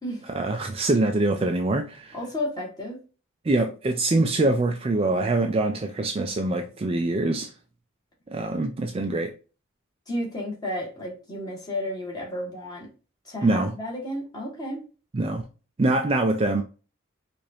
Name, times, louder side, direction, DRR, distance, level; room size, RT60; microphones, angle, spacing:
voice 1, 0.3-2.2 3.4-7.5 8.3-9.3 13.4-13.7 15.1-15.4 15.8-16.6, right 2 dB, 25° right, 0.4 m, -24 dB
voice 2, 2.1-3.0 10.1-12.9 13.2-14.8, left 1 dB, 20° left, 1.6 m, -32 dB
4.8 x 2.5 x 2.7 m
head